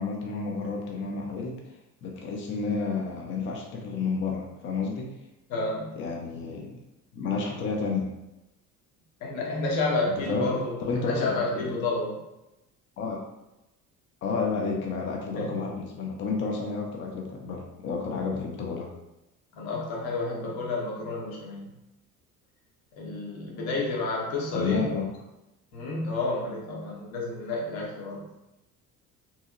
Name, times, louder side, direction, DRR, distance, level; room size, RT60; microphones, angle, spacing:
voice 1, 0.0-1.6 2.0-5.1 6.0-6.8 7.1-8.1 10.1-11.7 13.0-13.2 14.2-18.9 24.5-25.1, left 4 dB, 25° left, 0 dB, 0.5 m, -31 dB
voice 2, 5.5-5.9 9.2-12.2 15.3-15.6 19.5-21.7 23.0-24.9 25.7-28.2, left 2 dB, 55° left, -2 dB, 0.9 m, -30 dB
2.8 x 2.7 x 2.4 m, 0.94 s
figure-of-eight pair, 55°, 44 cm